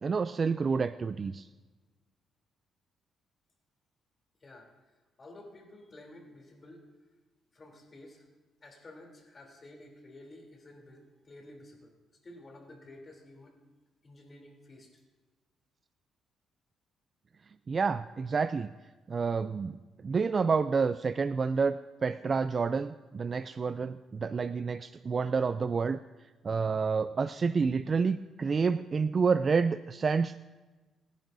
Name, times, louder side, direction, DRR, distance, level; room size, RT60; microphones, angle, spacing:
voice 1, 0.0-1.5 17.7-18.7 19.1-19.8 20.0-26.0 26.4-30.4, right 5 dB, 40° right, 12 dB, 0.4 m, -29 dB
voice 2, 4.4-4.7 5.2-6.9 7.5-8.3 8.6-11.9 12.2-13.6 14.0-14.9, left 1 dB, 35° left, 1 dB, 3.3 m, -51 dB
28.0 x 10.5 x 2.7 m, 1.2 s
cardioid pair, 90°, 0 cm